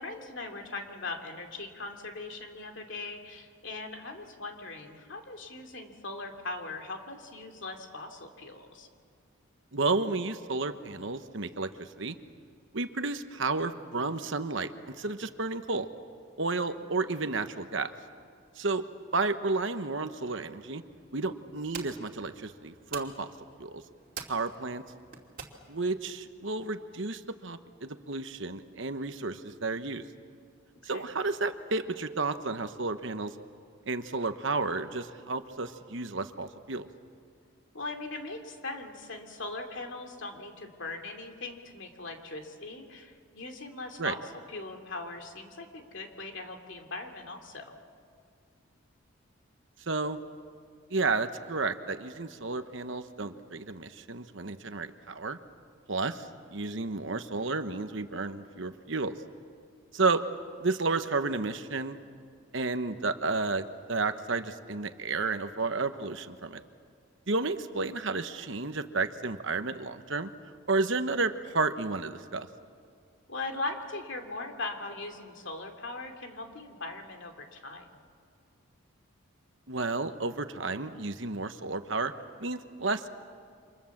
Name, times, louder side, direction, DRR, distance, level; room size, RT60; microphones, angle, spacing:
voice 1, 0.0-8.9 16.7-16.8 30.8-31.0 37.7-44.2 44.5-47.7 73.3-77.9, left 3 dB, 60° left, 4 dB, 2.7 m, -40 dB
voice 2, 9.7-12.1 12.7-15.9 16.4-17.9 18.6-18.8 19.1-20.8 21.1-23.3 23.6-23.8 24.3-24.8 25.7-30.0 30.8-33.3 33.9-36.9 44.0-44.1 49.9-50.2 50.9-55.4 55.9-59.2 59.9-60.2 60.6-62.0 62.5-66.6 67.3-70.3 70.7-72.5 79.7-82.1 82.4-83.1, right 3 dB, 60° right, 9 dB, 1.1 m, -32 dB
sound 1, 20.8-26.1, right 6 dB, 40° right, 2.7 m, -47 dB
29.5 x 26.0 x 7.3 m, 2.2 s
head